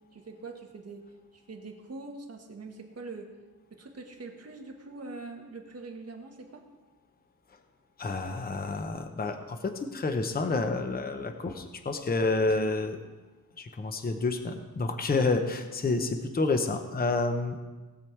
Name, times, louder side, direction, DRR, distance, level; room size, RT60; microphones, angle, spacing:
voice 1, 0.1-3.3 3.7-6.6 15.9-16.1, right 3 dB, 45° right, 2 dB, 1.6 m, -43 dB
voice 2, 8.0-13.0 13.6-17.6, left 3 dB, 25° left, 6 dB, 0.8 m, -29 dB
19.0 x 6.9 x 4.5 m, 1.3 s
wide cardioid pair, 160°, 37 cm